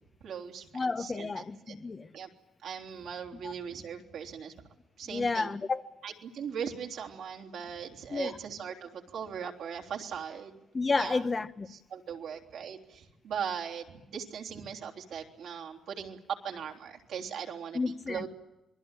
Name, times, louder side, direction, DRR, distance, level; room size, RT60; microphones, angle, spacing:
voice 1, 0.2-1.7 2.1-2.3 2.6-4.5 5.0-5.5 6.0-10.5 11.0-11.2 11.7-16.2 16.4-17.8 18.1-18.3, right 7 dB, 75° right, 3.3 m, -39 dB
voice 2, 0.7-2.1 3.4-3.5 5.1-5.8 8.1-8.4 10.7-11.7 17.7-18.3, left 3 dB, 30° left, 1.0 m, -31 dB
27.0 x 20.5 x 9.0 m
cardioid pair, 95°, 0 cm